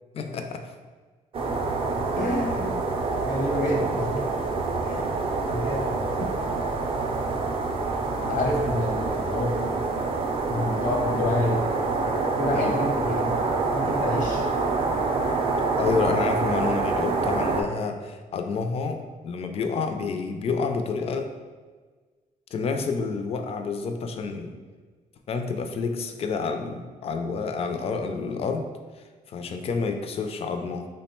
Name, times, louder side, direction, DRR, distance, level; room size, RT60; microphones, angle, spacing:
voice 1, 0.1-0.7 1.5-1.6 2.2-2.6 6.2-6.3 8.2-8.5 12.5-12.8 15.8-21.3 22.5-24.6 25.3-28.6 29.3-30.9, left 4 dB, 45° left, 5 dB, 0.4 m, -29 dB
sound 1, 1.3-17.6, right 3 dB, 45° right, 0.4 m, -26 dB
voice 2, 2.2-2.7 3.2-4.4 4.8-5.1 5.5-6.1 8.3-9.7 10.5-11.7 12.4-13.4 13.7-14.5, left 1 dB, 75° left, 0 dB, 0.8 m, -28 dB
3.5 x 2.1 x 4.3 m, 1.4 s
cardioid pair, 130°, 14 cm